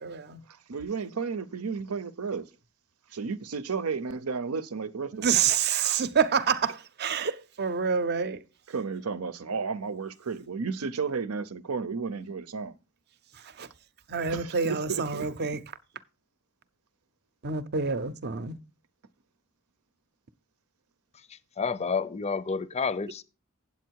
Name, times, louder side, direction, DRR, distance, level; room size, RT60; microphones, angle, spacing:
voice 1, 0.0-0.4 5.1-8.4 13.6-13.7 14.1-15.6 17.4-18.6, right 6 dB, 50° right, 0.7 m, -27 dB
voice 2, 0.7-2.5 3.1-5.3 8.7-12.7 14.3-15.3, right 5 dB, 85° right, 0.7 m, -33 dB
voice 3, 21.6-23.2, left 5 dB, 30° left, 0.5 m, -29 dB
8.5 x 8.1 x 4.6 m
head